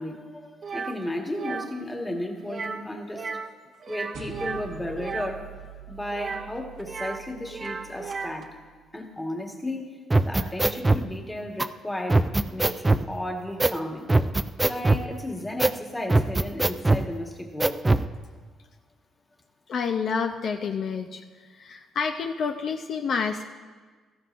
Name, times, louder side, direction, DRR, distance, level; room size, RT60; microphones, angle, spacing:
voice 1, 0.0-3.5 3.9-8.5 8.9-9.9 10.2-12.3 12.5-14.1 14.6-17.9, left 1 dB, 10° left, 2 dB, 1.5 m, -34 dB
sound 1, 0.6-1.0 1.3-1.7 2.5-2.9 3.1-3.5 3.8-5.3 6.1-7.2 7.5-8.4, right 5 dB, 40° right, 0.8 m, -34 dB
sound 2, 4.1-8.8, right 7 dB, 85° right, 1.4 m, -45 dB
sound 3, 10.1-11.0 11.6-11.7 12.1-13.0 13.6-13.8 14.1-15.1 15.6-15.8 16.1-17.0 17.6-18.1, right 2 dB, 15° right, 0.4 m, -21 dB
voice 2, 19.7-21.2 21.5-23.4, left 5 dB, 55° left, 5 dB, 0.6 m, -28 dB
17.0 x 14.0 x 2.5 m, 1.5 s
cardioid pair, 115°, 0 cm